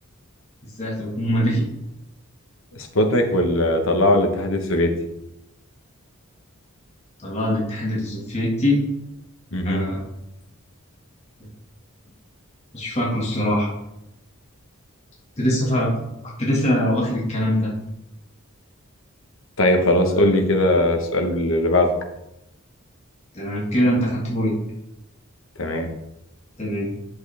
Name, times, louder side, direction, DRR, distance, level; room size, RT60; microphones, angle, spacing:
voice 1, 0.8-1.7 7.2-8.8 9.6-10.0 12.7-13.7 15.4-16.0 16.4-17.7 20.1-20.3 23.3-24.5 26.6-26.9, equal, 30° left, -5 dB, 1.9 m, -22 dB
voice 2, 2.9-4.9 9.5-9.8 19.6-21.9 25.6-25.9, left 1 dB, 65° left, 4 dB, 1.2 m, -19 dB
8.2 x 7.6 x 3.5 m, 0.87 s
head